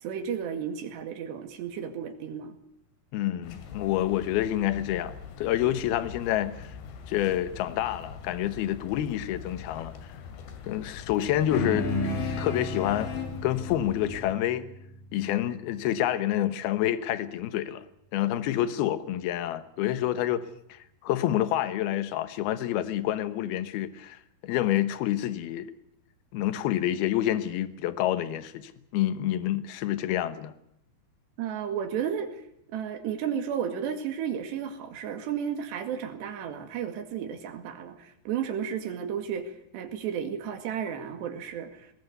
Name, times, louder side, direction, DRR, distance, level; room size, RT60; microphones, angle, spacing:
voice 1, 0.0-2.6 31.4-32.4 32.7-41.9, right 8 dB, 85° right, 4.3 m, -33 dB
voice 2, 3.1-6.7 7.1-10.1 10.6-11.9 12.4-13.1 13.4-14.7 15.1-17.9 18.1-20.4 20.7-25.7 26.3-30.5, left 12 dB, 70° left, 3.0 m, -28 dB
sound 1, 3.4-14.3, left 6 dB, 90° left, 4.3 m, -43 dB
sound 2, 11.5-16.3, left 2 dB, 55° left, 4.2 m, -33 dB
20.0 x 20.0 x 8.1 m
omnidirectional pair, 4.8 m